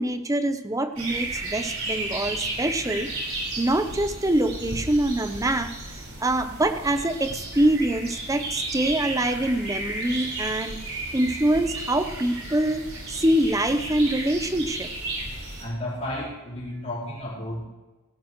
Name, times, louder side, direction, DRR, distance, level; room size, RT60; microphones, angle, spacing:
voice 1, 0.0-3.1 3.6-5.8 6.2-10.8 11.1-14.9, right 1 dB, 15° right, 9 dB, 0.7 m, -24 dB
sound 1, 1.0-15.6, right 2 dB, 70° right, 4.5 m, -33 dB
voice 2, 15.6-17.7, left 1 dB, 30° left, -7 dB, 3.8 m, -32 dB
17.5 x 12.5 x 3.1 m, 1.2 s
head